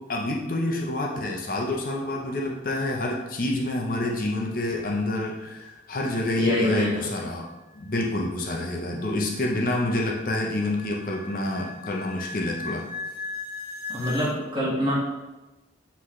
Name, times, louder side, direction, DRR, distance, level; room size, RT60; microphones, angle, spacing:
voice 1, 0.1-7.4 7.7-12.8, left 1 dB, 50° left, -1 dB, 0.7 m, -28 dB
voice 2, 6.4-7.1 8.9-9.0 13.9-14.9, left 1 dB, 25° right, -6 dB, 1.7 m, -26 dB
sound 1, 7.4-14.3, left 3 dB, 65° right, 1.7 m, -39 dB
7.6 x 4.2 x 3.2 m, 1.1 s
head